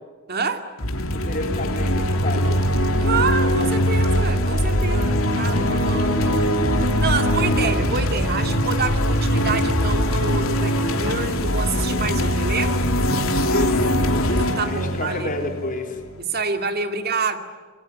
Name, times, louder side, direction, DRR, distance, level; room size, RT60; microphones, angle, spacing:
voice 1, 0.3-0.7 3.0-12.7 14.4-15.3 16.2-17.4, right 4 dB, 45° right, 7 dB, 2.4 m, -27 dB
sound 1, 0.8-16.2, equal, 70° left, 3.3 m, -21 dB
voice 2, 1.1-3.1 5.0-5.2 5.5-5.6 13.4-14.1 14.6-16.0, left 2 dB, 40° left, 4 dB, 4.2 m, -30 dB
27.0 x 21.0 x 9.9 m, 1.5 s
head